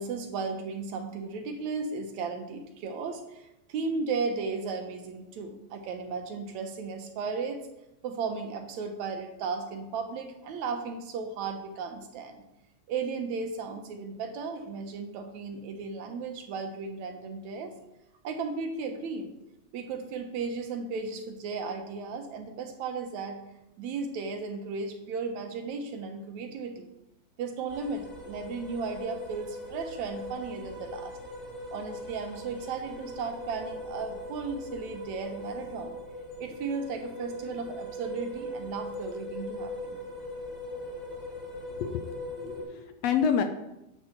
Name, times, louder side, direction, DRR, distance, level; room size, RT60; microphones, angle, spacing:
voice 1, 0.0-7.6 8.0-12.4 12.9-17.7 18.2-19.3 19.7-23.4 23.8-26.9 27.4-31.2 31.7-36.0 36.4-40.0, right 4 dB, 75° right, 5 dB, 2.3 m, -35 dB
sound 1, 27.7-42.6, left 1 dB, 20° left, 2.1 m, -40 dB
voice 2, 42.3-43.4, left 7 dB, 75° left, 6 dB, 1.7 m, -28 dB
8.7 x 6.1 x 5.8 m, 0.90 s
omnidirectional pair, 3.3 m